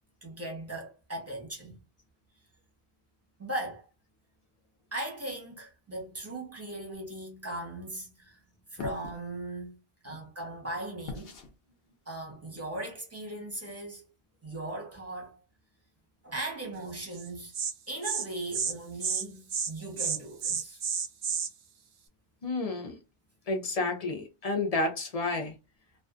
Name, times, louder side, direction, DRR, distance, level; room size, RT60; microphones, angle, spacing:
voice 1, 0.2-1.8 3.4-3.9 4.9-8.4 8.7-9.8 10.0-11.3 12.1-14.1 14.4-15.4 16.2-17.5 17.9-20.8, right 1 dB, 15° right, 0.8 m, -38 dB
sound 1, 8.8-9.2 11.1-11.5, left 4 dB, 65° left, 0.9 m, -40 dB
Insect, 17.2-17.3 17.5-17.7 18.0-18.2 18.5-18.7 19.0-19.2 19.5-19.7 20.0-21.5, right 7 dB, 55° right, 0.5 m, -30 dB
voice 2, 22.4-23.0 23.5-25.5, left 3 dB, 40° left, 0.6 m, -30 dB
2.4 x 2.4 x 2.4 m
omnidirectional pair, 1.1 m